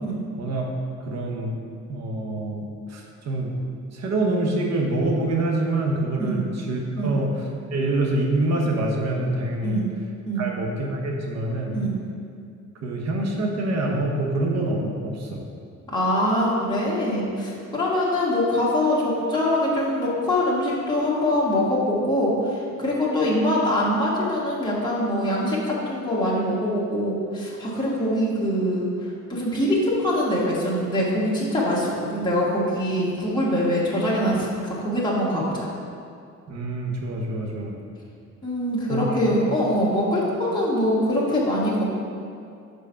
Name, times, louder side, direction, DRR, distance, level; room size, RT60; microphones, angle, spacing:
voice 1, 0.4-0.7 1.1-1.6 1.9-3.5 3.9-7.3 7.7-9.8 10.4-11.8 12.8-15.4 36.5-37.7 38.9-39.0, right 2 dB, 60° right, 0 dB, 1.1 m, -26 dB
voice 2, 15.9-35.7 38.4-41.9, left 1 dB, 15° left, -6 dB, 1.5 m, -23 dB
5.3 x 4.0 x 5.6 m, 2.4 s
cardioid pair, 90°, 30 cm